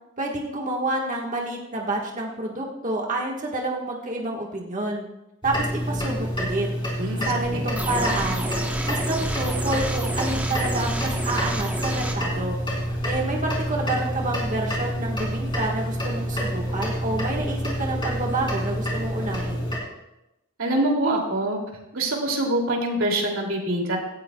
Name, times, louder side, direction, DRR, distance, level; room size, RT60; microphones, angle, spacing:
voice 1, 0.2-5.0 5.4-6.7 7.2-8.5 8.8-12.6 13.1-19.6, right 2 dB, 35° right, -1 dB, 1.5 m, -28 dB
sound 1, 5.4-19.8, equal, 25° left, 3.6 m, -28 dB
voice 2, 7.0-7.7 20.6-21.6 21.9-24.0, right 1 dB, 65° right, 0 dB, 2.8 m, -25 dB
sound 2, 7.8-12.2, right 1 dB, 10° right, 1.1 m, -31 dB
17.0 x 14.0 x 2.3 m, 0.91 s
head